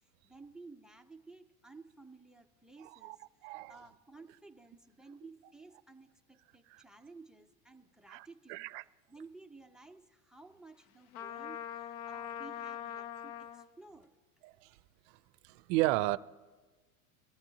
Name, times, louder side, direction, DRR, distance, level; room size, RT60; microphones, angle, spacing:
voice 1, 0.2-3.2 3.7-8.7 9.1-14.2, right 3 dB, ahead, 0.4 m, -54 dB
voice 2, 2.8-3.2 3.4-3.7 6.7-6.8 8.1-8.8 14.4-14.7 15.4-16.2, right 18 dB, 55° right, 0.5 m, -33 dB
Trumpet, 11.1-13.7, left 10 dB, 75° left, 0.8 m, -42 dB
23.0 x 13.0 x 2.8 m
supercardioid pair, 115°, 44 cm